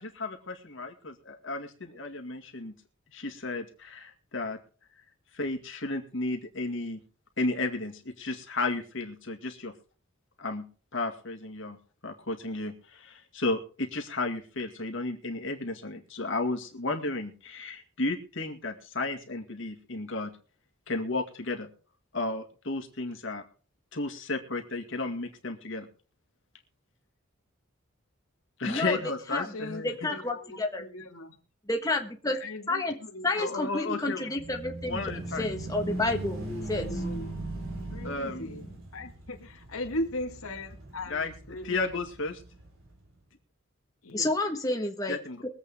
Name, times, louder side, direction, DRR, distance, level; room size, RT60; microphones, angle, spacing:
voice 1, 0.0-2.7 3.1-4.6 5.3-7.0 7.4-9.7 10.4-10.6 10.9-11.8 12.0-20.3 20.9-21.7 22.1-23.4 23.9-25.9 28.6-30.1 33.4-34.2 34.9-35.5 38.0-38.5 41.1-41.3 41.7-42.3 45.1-45.4, left 2 dB, 60° left, 2.1 m, -33 dB
voice 2, 28.6-29.0 29.3-29.5 29.8-30.8 31.7-32.4 32.7-33.0 33.2-35.0 35.4-36.9 44.1-45.2, left 2 dB, 15° left, 1.4 m, -30 dB
voice 3, 29.3-31.4 32.3-34.4 35.8-37.4 37.9-42.0 44.0-44.3, left 1 dB, 90° left, 1.9 m, -39 dB
sound 1, 34.4-43.2, right 2 dB, 75° right, 4.5 m, -39 dB
23.0 x 8.2 x 3.6 m
head